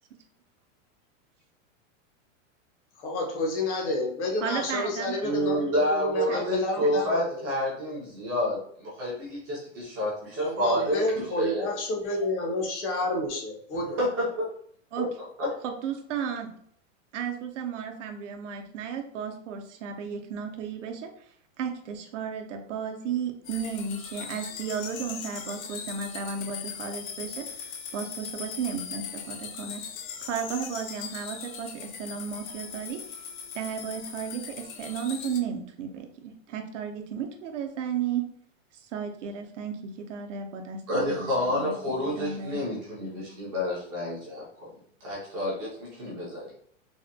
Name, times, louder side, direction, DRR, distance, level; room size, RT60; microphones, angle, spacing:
voice 1, 3.0-7.5 10.4-14.0, left 1 dB, 60° left, 0 dB, 1.0 m, -30 dB
voice 2, 4.4-5.6 6.3-6.5 6.8-7.0 14.9-15.1 15.6-16.5 17.1-21.3 21.6-29.8 30.2-33.2 33.5-38.3 38.7-42.6, right 7 dB, 65° right, 4 dB, 0.6 m, -34 dB
voice 3, 5.2-11.7 14.0-14.2 15.0-15.1 15.4-15.5 40.9-44.7 45.0-46.5, equal, 15° right, -7 dB, 0.4 m, -29 dB
sound 1, 23.4-35.4, left 7 dB, 90° left, 0.7 m, -39 dB
3.4 x 2.1 x 2.6 m, 0.63 s
supercardioid pair, 175°, 39 cm